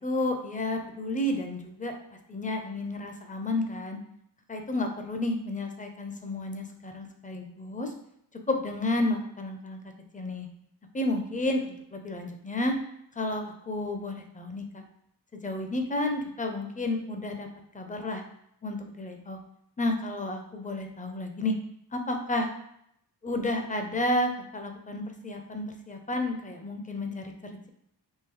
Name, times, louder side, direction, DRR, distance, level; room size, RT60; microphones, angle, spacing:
voice 1, 0.0-1.9 2.3-4.0 4.5-7.9 8.5-9.8 10.1-10.5 10.9-12.7 13.2-14.6 15.4-17.5 17.7-18.2 18.6-19.4 19.8-21.5 21.9-22.5 23.2-27.3, left 1 dB, 20° left, 4 dB, 0.4 m, -31 dB
3.7 x 2.6 x 3.0 m, 0.74 s
wide cardioid pair, 105°, 40 cm